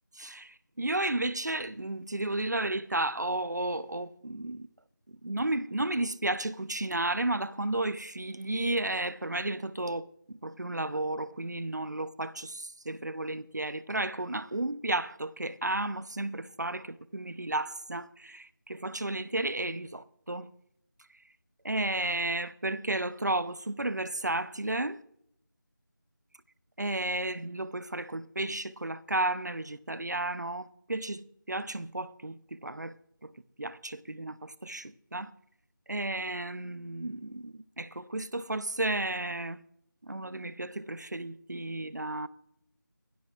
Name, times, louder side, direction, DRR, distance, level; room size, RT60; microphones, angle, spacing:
voice 1, 0.2-4.7 5.2-20.5 21.6-25.0 26.8-32.9 33.6-35.3 35.9-39.6 40.0-42.3, right 2 dB, 55° right, 0.8 m, -33 dB
19.5 x 14.5 x 2.5 m
figure-of-eight pair, 180°, 11 cm